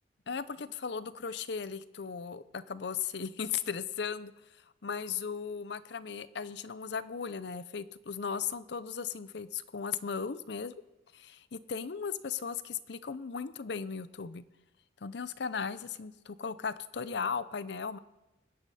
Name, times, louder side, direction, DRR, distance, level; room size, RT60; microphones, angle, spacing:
voice 1, 0.3-4.3 4.8-10.7 11.1-14.4 15.0-18.0, left 6 dB, 60° left, 15 dB, 0.6 m, -37 dB
22.0 x 10.0 x 4.2 m, 0.98 s
head